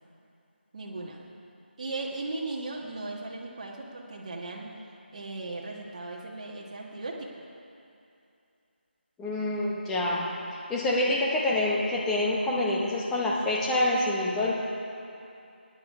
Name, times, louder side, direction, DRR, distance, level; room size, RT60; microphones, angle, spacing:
voice 1, 0.7-1.2 1.8-4.7 5.1-7.4, right 2 dB, 35° right, -1 dB, 1.4 m, -37 dB
voice 2, 9.2-10.3 10.7-14.5, left 1 dB, 5° left, -5 dB, 0.9 m, -26 dB
16.5 x 10.0 x 4.7 m, 2.7 s
figure-of-eight pair, 160°, 6 cm